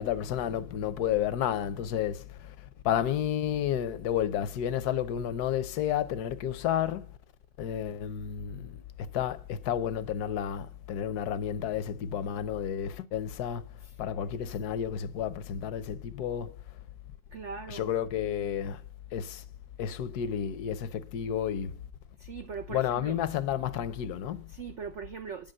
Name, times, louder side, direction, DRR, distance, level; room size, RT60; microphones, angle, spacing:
voice 1, 0.0-7.1 7.6-13.6 14.0-16.6 17.7-18.8 19.1-19.4 19.8-21.8 22.7-24.5, left 9 dB, 65° left, 1.0 m, -31 dB
voice 2, 17.3-17.9 22.2-23.2 24.5-25.5, right 6 dB, 85° right, 0.6 m, -40 dB
10.5 x 5.3 x 7.6 m
omnidirectional pair, 2.1 m